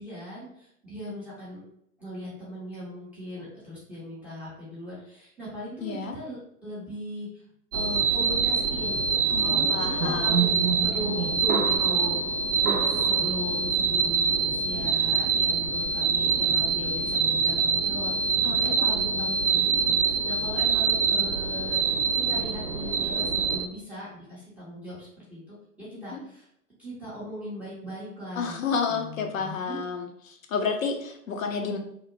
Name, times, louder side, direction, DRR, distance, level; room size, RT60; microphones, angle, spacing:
voice 1, 0.0-1.6 2.0-7.4 7.7-9.0 9.4-10.5 10.8-21.8 22.1-26.5 26.8-28.6 28.9-29.8 31.3-31.8, equal, 5° right, -10 dB, 0.5 m, -39 dB
voice 2, 5.8-6.2 9.3-10.5 18.4-19.3 26.0-26.2 28.4-31.8, left 5 dB, 60° left, 3 dB, 0.5 m, -31 dB
sound 1, 7.7-23.7, right 5 dB, 75° right, 0.5 m, -25 dB
2.8 x 2.0 x 2.5 m, 0.73 s
figure-of-eight pair, 100°, 46 cm